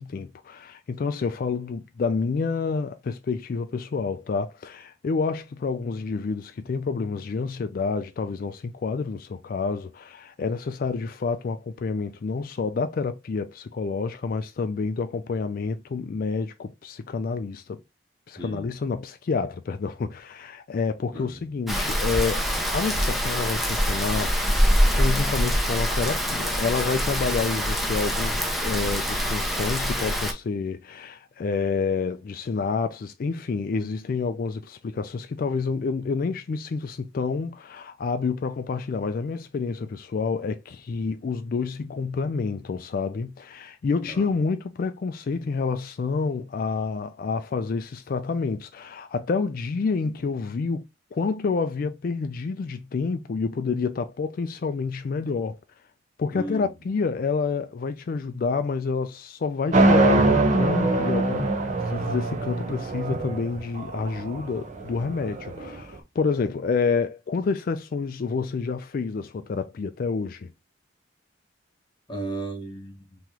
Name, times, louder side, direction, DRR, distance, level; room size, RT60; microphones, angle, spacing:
voice 1, 0.0-17.8 18.3-22.5 22.7-50.9 51.1-55.6 56.2-61.6 61.9-70.5, left 4 dB, 50° left, 0.3 m, -28 dB
voice 2, 18.4-18.7 21.1-21.3 44.1-44.3 56.3-56.7 72.1-73.2, right 2 dB, 25° left, 1.1 m, -35 dB
Rain, 21.7-30.3, equal, ahead, 0.6 m, -24 dB
sound 1, 59.7-65.8, right 2 dB, 40° right, 0.7 m, -23 dB
3.0 x 2.9 x 3.6 m
head